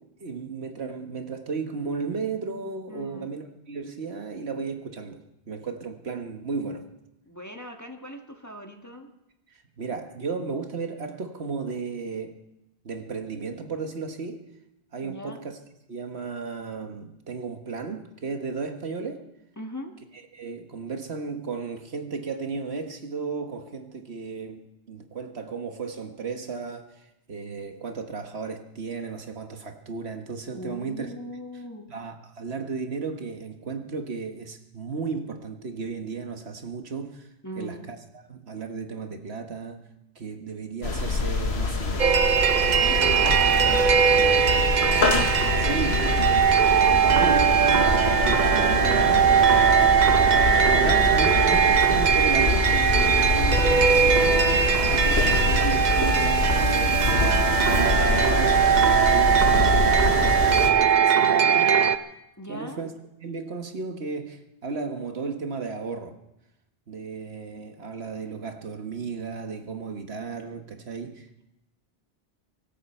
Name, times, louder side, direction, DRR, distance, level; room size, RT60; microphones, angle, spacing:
voice 1, 0.2-6.9 9.5-12.4 12.8-14.4 14.9-15.6 15.9-19.2 20.3-27.0 27.3-31.1 31.9-37.3 37.6-39.8 40.1-42.1 45.7-46.0 47.0-47.3 48.2-49.2 50.6-54.5 54.9-61.8 62.5-62.9 63.2-66.1 66.9-71.4, right 4 dB, 75° right, 5 dB, 1.6 m, -34 dB
voice 2, 2.9-3.3 7.2-9.1 15.0-15.4 19.6-19.9 30.5-31.9 37.4-37.9 42.7-46.1 46.6-47.9 48.5-49.7 62.4-62.9, equal, 15° left, 3 dB, 1.5 m, -39 dB
sound 1, 40.8-60.7, left 3 dB, 80° left, 1.7 m, -26 dB
sound 2, 42.0-62.0, right 7 dB, 50° right, 0.8 m, -20 dB
24.0 x 13.5 x 4.4 m, 0.86 s
omnidirectional pair, 1.1 m